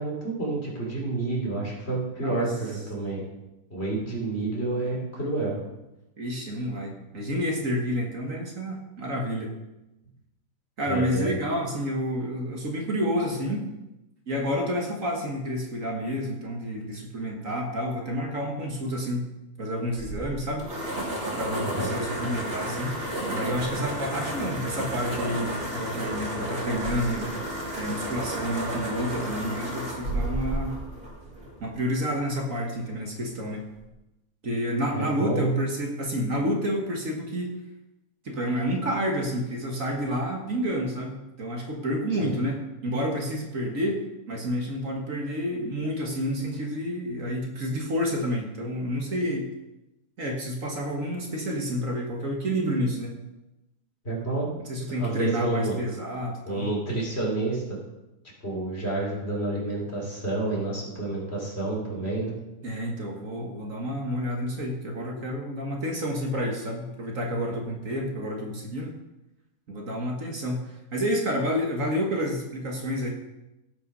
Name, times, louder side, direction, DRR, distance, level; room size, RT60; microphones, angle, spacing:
voice 1, 0.0-3.2 3.7-5.6 10.9-11.3 21.6-21.9 34.9-35.6 42.2-42.4 54.0-54.5 55.0-55.8 56.4-57.6 58.4-62.3, right 2 dB, 40° left, -3 dB, 3.7 m, -29 dB
voice 2, 2.2-2.5 6.2-9.5 10.8-13.7 14.3-19.3 19.6-20.7 21.3-23.0 23.3-27.3 27.8-30.8 31.6-33.6 34.4-37.5 38.3-44.0 44.3-49.5 50.2-53.2 54.7-56.7 62.6-68.9 69.7-70.6 70.9-73.1, equal, 55° right, 1 dB, 1.9 m, -29 dB
sound 1, 19.9-31.7, right 1 dB, 35° right, 2.8 m, -32 dB
17.0 x 5.8 x 5.5 m, 0.96 s
omnidirectional pair, 1.7 m